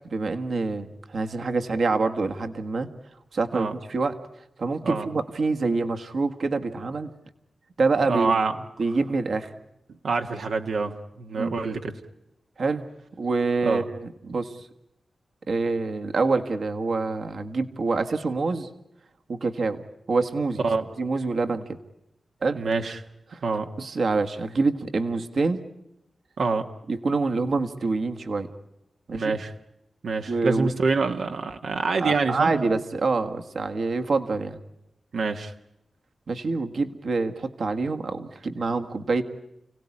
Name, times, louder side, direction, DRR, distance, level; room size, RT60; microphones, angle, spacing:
voice 1, 0.1-2.9 3.3-4.1 4.6-7.1 7.8-8.4 8.8-9.5 11.4-11.5 12.6-12.8 13.2-14.6 15.5-18.7 19.3-19.8 20.1-20.6 21.0-21.8 22.4-22.6 23.3-23.4 23.8-25.6 26.9-28.5 29.1-29.4 30.3-30.7 32.0-34.6 36.3-39.2, right 3 dB, 60° right, 6 dB, 1.6 m, -26 dB
voice 2, 8.1-8.6 10.0-12.0 13.6-13.8 14.3-14.4 20.6-20.8 22.5-23.0 23.4-23.7 26.4-26.7 29.1-29.5 30.0-32.7 35.1-35.5, right 4 dB, 80° right, 4 dB, 1.5 m, -26 dB
30.0 x 18.0 x 9.9 m, 0.86 s
wide cardioid pair, 155°, 0 cm